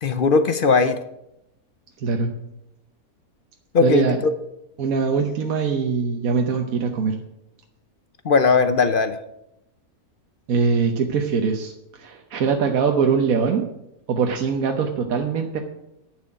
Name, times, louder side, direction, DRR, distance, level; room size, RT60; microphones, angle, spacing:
voice 1, 0.0-1.0 3.7-4.3 8.2-9.2, left 4 dB, 55° left, 11 dB, 0.6 m, -18 dB
voice 2, 2.0-2.3 3.8-4.2 4.8-7.2 10.5-13.6 14.1-15.6, right 5 dB, 70° right, 3 dB, 1.4 m, -22 dB
11.0 x 6.2 x 8.8 m, 0.85 s
omnidirectional pair, 1.6 m